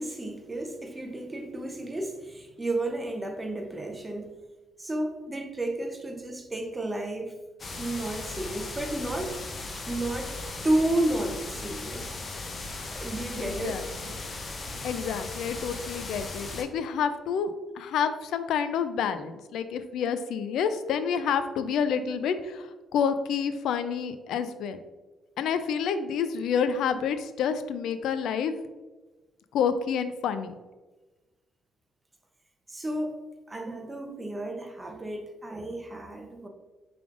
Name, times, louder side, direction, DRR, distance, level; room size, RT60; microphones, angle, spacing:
voice 1, 0.0-4.3 4.8-7.3 7.8-10.4 10.6-12.2 12.8-13.8 32.7-33.1 33.5-36.5, right 1 dB, 15° right, 4 dB, 0.6 m, -32 dB
sound 1, 7.6-16.6, left 3 dB, 35° left, 0.6 m, -37 dB
voice 2, 13.4-13.9 14.8-24.8 25.4-28.5 29.5-30.5, left 7 dB, 80° left, 11 dB, 0.3 m, -28 dB
5.1 x 3.3 x 2.4 m, 1.2 s
cardioid pair, 90°, 0 cm